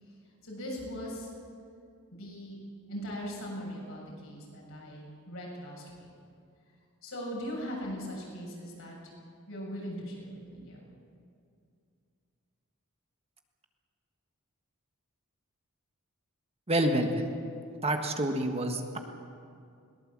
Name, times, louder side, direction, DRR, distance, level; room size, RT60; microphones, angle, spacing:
voice 1, 0.4-1.3 2.1-2.6 2.9-6.1 7.0-9.0 9.5-10.8, equal, 70° left, -3 dB, 7.4 m, -39 dB
voice 2, 16.7-17.2 17.8-19.0, right 1 dB, 30° right, 4 dB, 1.5 m, -28 dB
21.5 x 19.0 x 7.5 m, 2.4 s
head